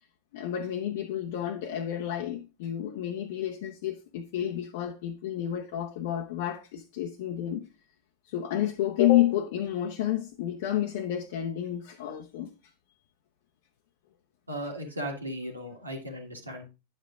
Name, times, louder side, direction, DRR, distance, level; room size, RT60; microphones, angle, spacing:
voice 1, 0.3-7.6 8.3-12.5, left 12 dB, 50° left, 0.7 m, -30 dB
voice 2, 14.5-16.6, equal, 80° right, 1.7 m, -36 dB
9.9 x 7.5 x 2.4 m
figure-of-eight pair, 90°, 0 cm